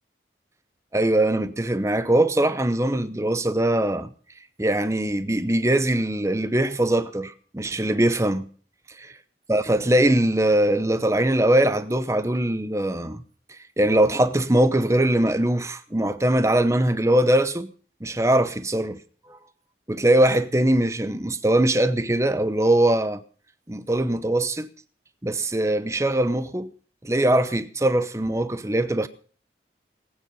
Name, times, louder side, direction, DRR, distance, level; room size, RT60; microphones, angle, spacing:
voice 1, 0.9-4.1 4.6-8.5 9.0-9.1 9.5-13.2 13.5-17.7 18.0-19.0 19.3-19.4 19.9-23.2 23.7-24.7 25.2-26.7 27.0-29.1, right 1 dB, 15° right, 0.8 m, -21 dB
19.5 x 9.4 x 5.5 m
head